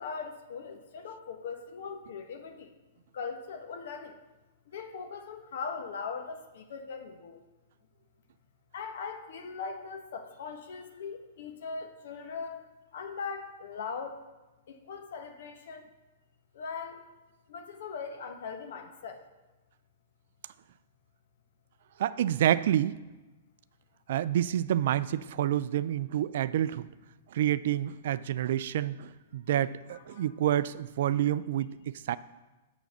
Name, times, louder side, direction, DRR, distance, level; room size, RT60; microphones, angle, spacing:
voice 1, 0.0-2.7 3.1-4.2 4.7-7.4 8.7-14.2 14.7-15.9 16.5-17.1 17.5-19.2 29.9-30.3, left 5 dB, 65° left, 5 dB, 1.1 m, -40 dB
voice 2, 22.0-23.0 24.1-26.9 27.3-32.2, right 11 dB, 60° right, 16 dB, 0.3 m, -28 dB
7.1 x 7.0 x 5.7 m, 1.1 s
hypercardioid pair, 110°, 0 cm